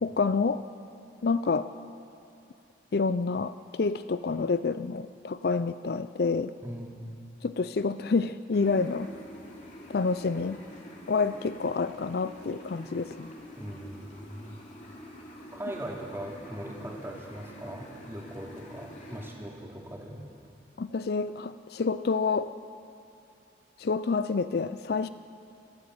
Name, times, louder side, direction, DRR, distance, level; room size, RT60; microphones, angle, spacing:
voice 1, 0.0-0.6 1.2-1.7 2.9-6.5 7.4-9.1 9.9-10.6 11.1-13.3 20.8-22.5 23.8-25.1, left 4 dB, 55° left, 13 dB, 0.4 m, -28 dB
voice 2, 6.6-7.1 13.6-14.6 15.5-20.3, right 1 dB, 15° right, -2 dB, 2.8 m, -40 dB
sound 1, 8.5-19.3, equal, 40° left, 2.9 m, -47 dB
28.5 x 13.0 x 7.9 m, 2.7 s
head